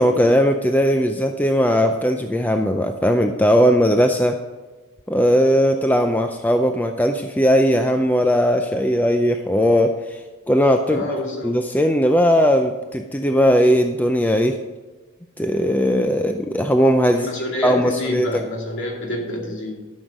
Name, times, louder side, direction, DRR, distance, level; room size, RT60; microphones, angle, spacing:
voice 1, 0.0-4.4 5.1-10.2 10.5-11.0 11.4-14.6 15.4-17.3 17.6-18.3, equal, 10° left, 5 dB, 0.5 m, -18 dB
voice 2, 10.9-11.6 17.1-19.7, left 1 dB, 55° left, -1 dB, 2.6 m, -27 dB
12.5 x 6.4 x 5.3 m, 1.2 s
head